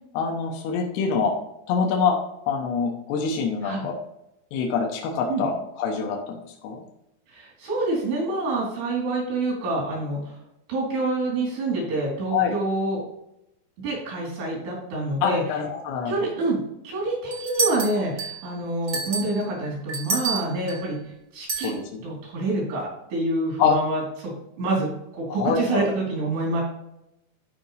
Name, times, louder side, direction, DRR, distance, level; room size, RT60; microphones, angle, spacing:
voice 1, 0.1-1.3 1.7-2.2 2.5-4.0 4.5-6.8 12.3-12.5 15.2-16.1 21.6-21.8 23.6-23.8 25.4-25.9, left 6 dB, 75° left, 1 dB, 3.2 m, -25 dB
voice 2, 7.3-10.4 10.7-13.0 13.8-15.4 16.1-16.6 16.8-21.0 21.3-21.7 22.0-26.6, right 2 dB, 80° right, -4 dB, 6.0 m, -27 dB
sound 1, 17.3-18.5 18.9-20.9 21.5-21.7, right 4 dB, 45° right, 1.3 m, -28 dB
13.5 x 5.1 x 3.4 m, 0.84 s
omnidirectional pair, 4.8 m